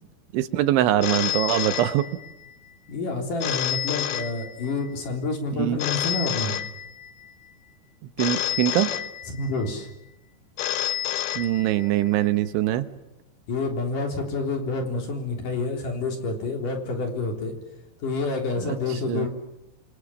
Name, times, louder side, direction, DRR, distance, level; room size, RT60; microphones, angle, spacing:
voice 1, 0.3-2.0 5.6-5.8 8.2-8.9 11.4-12.9 18.6-18.8 19.1-19.3, right 13 dB, 80° right, 11 dB, 3.5 m, -23 dB
Telephone, 1.0-2.5 3.4-4.9 5.8-7.3 8.2-9.7 10.6-12.1, left 11 dB, 75° left, 3.0 m, -29 dB
voice 2, 2.9-6.6 9.3-9.9 13.5-17.5 18.0-19.3, left 3 dB, 45° left, 3 dB, 4.9 m, -28 dB
27.5 x 26.0 x 7.3 m, 0.93 s
omnidirectional pair, 5.5 m